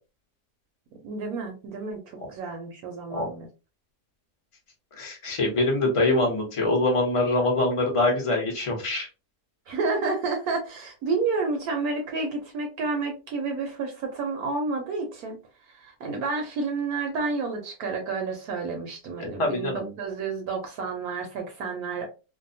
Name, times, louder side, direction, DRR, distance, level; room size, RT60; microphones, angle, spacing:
voice 1, 1.0-2.0 2.3-3.5 9.7-15.4 15.7-19.7 20.0-22.0, right 4 dB, 70° right, 3 dB, 1.0 m, -30 dB
voice 2, 5.0-9.1 19.2-19.9, left 2 dB, 35° left, 0 dB, 0.5 m, -24 dB
2.7 x 2.1 x 2.6 m, 0.31 s
omnidirectional pair, 1.8 m